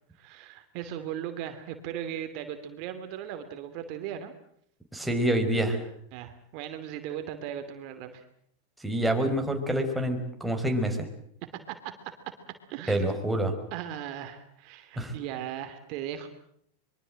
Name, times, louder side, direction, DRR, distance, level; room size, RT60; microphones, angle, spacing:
voice 1, 0.1-4.3 6.1-8.2 11.7-11.8 12.0-12.1 12.7-13.0 13.7-16.3, right 10 dB, 55° right, 8 dB, 2.8 m, -37 dB
voice 2, 4.9-5.8 8.8-11.1 12.9-13.5 15.0-15.1, right 1 dB, 5° right, 3 dB, 5.0 m, -27 dB
24.5 x 23.5 x 7.7 m, 0.69 s
hypercardioid pair, 105°, 0 cm